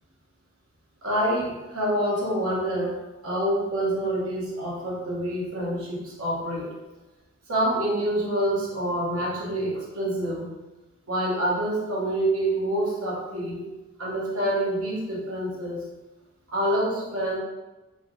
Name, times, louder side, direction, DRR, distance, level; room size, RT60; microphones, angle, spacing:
voice 1, 1.0-3.0 3.2-6.7 7.5-10.5 11.1-13.7 14.0-15.8 16.5-17.4, right 1 dB, 80° right, -4 dB, 1.1 m, -27 dB
4.6 x 2.0 x 3.1 m, 1.1 s
head